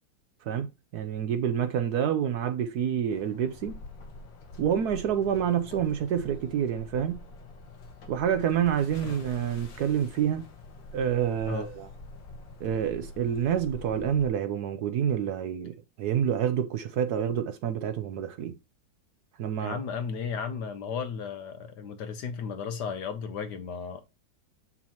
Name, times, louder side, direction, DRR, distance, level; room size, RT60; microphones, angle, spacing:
voice 1, 0.9-3.8 4.6-7.3 8.1-10.4 10.9-11.9 12.6-18.5 19.4-19.8, right 9 dB, 70° right, 1.0 m, -28 dB
sound 1, 3.1-14.3, left 2 dB, 85° left, 2.1 m, -46 dB
voice 2, 19.6-24.0, left 6 dB, 65° left, 1.5 m, -34 dB
7.3 x 6.1 x 2.9 m
omnidirectional pair, 2.0 m